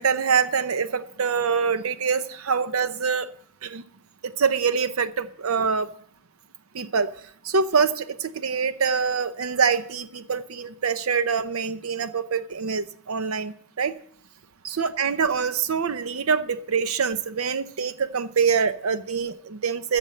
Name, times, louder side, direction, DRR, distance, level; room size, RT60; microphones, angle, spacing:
voice 1, 0.0-3.3 3.6-3.8 4.4-5.9 6.7-7.1 7.4-14.0 14.6-20.0, right 6 dB, 75° right, 0.7 m, -25 dB
14.0 x 6.7 x 7.7 m
head